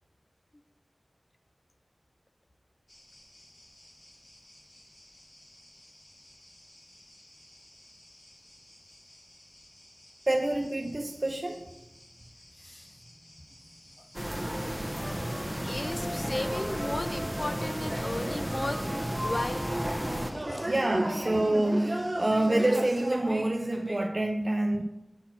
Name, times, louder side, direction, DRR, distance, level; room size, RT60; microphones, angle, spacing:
sound 1, 2.9-22.7, left 1 dB, 55° left, 2.4 m, -56 dB
voice 1, 10.3-11.6 20.6-24.8, right 1 dB, 45° right, 3 dB, 0.6 m, -27 dB
sound 2, 14.1-20.3, equal, 5° right, 1.1 m, -33 dB
voice 2, 15.6-18.8 19.2-19.7 20.5-20.7, left 1 dB, 35° left, 9 dB, 0.7 m, -35 dB
sound 3, 18.7-24.1, right 1 dB, 20° right, 0.8 m, -35 dB
7.4 x 4.1 x 5.8 m, 0.95 s
wide cardioid pair, 45°, 0 cm